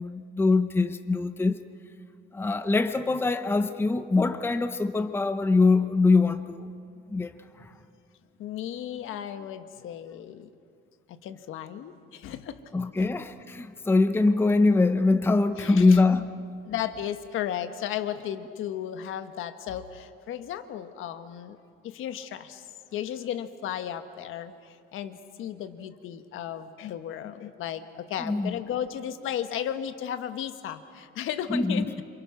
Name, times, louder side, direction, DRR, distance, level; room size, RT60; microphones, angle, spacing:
voice 1, 0.0-1.6 2.3-6.7 7.1-7.7 12.7-16.4 28.2-28.6 31.5-32.0, left 3 dB, 10° left, 10 dB, 0.7 m, -23 dB
voice 2, 8.4-10.5 11.1-12.6 13.0-13.1 15.6-16.0 16.6-21.6 21.8-22.7 22.9-32.0, left 10 dB, 70° left, 9 dB, 1.4 m, -35 dB
28.5 x 27.5 x 6.0 m, 2.3 s
cardioid pair, 150°, 21 cm